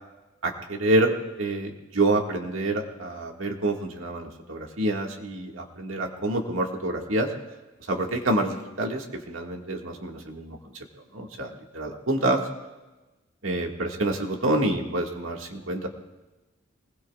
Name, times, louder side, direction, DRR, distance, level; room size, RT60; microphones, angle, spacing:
voice 1, 0.4-7.3 7.9-10.9 11.1-12.4 13.4-15.9, right 1 dB, 80° right, 2 dB, 1.9 m, -27 dB
26.5 x 20.5 x 2.4 m, 1.1 s
head